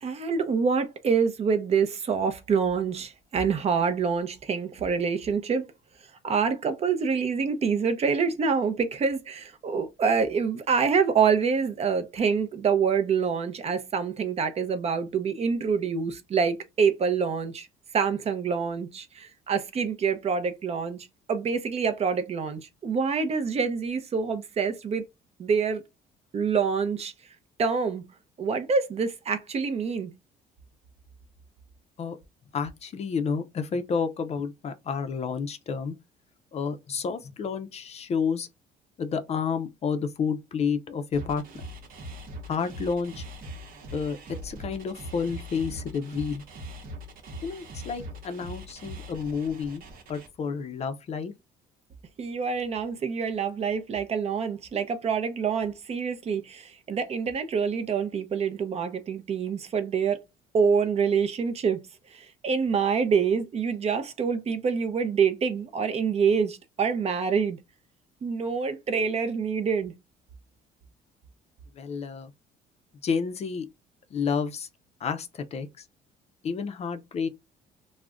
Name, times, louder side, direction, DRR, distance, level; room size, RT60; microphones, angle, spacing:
voice 1, 0.0-5.6 6.2-17.7 17.9-25.1 25.4-25.8 26.3-27.1 27.6-28.0 28.4-30.1 52.2-60.2 60.5-61.8 62.1-67.6 68.2-69.9, right 6 dB, 40° right, 0.5 m, -26 dB
voice 2, 32.5-35.9 36.5-38.5 39.0-41.4 42.5-43.2 43.9-44.2 44.4-46.4 47.4-49.8 50.1-51.3 71.8-72.3 73.0-73.7 74.1-74.7 75.0-75.8 76.4-77.3, left 5 dB, 40° left, 0.4 m, -30 dB
sound 1, 41.1-50.3, equal, 55° right, 0.9 m, -41 dB
2.4 x 2.1 x 3.4 m
cardioid pair, 110°, 17 cm